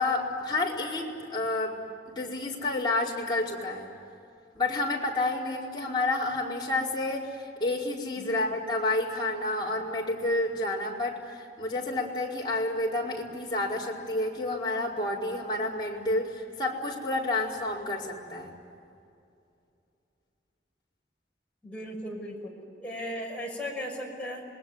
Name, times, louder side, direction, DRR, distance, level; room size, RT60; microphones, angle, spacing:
voice 1, 0.0-1.8 2.1-3.9 4.5-18.5, left 2 dB, 25° left, -4 dB, 4.8 m, -30 dB
voice 2, 21.6-24.5, equal, 5° left, -3 dB, 6.1 m, -37 dB
27.0 x 21.5 x 9.6 m, 2.5 s
head